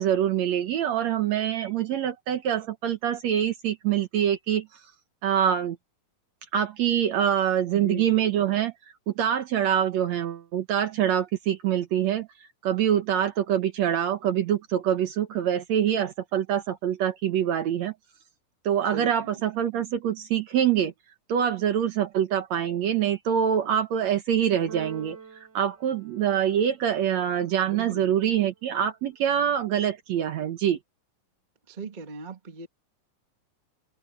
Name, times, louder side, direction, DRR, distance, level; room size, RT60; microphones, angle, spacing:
voice 1, 0.0-4.8 5.2-5.8 6.5-8.7 9.1-12.3 12.6-18.0 18.6-20.9 21.3-30.8, right 9 dB, 65° right, 2.0 m, -25 dB
voice 2, 7.7-8.2 18.9-19.4 27.7-28.2 31.7-32.7, right 2 dB, 25° right, 0.9 m, -38 dB
Keyboard (musical), 24.7-26.8, right 6 dB, 50° right, 5.0 m, -43 dB
omnidirectional pair, 4.0 m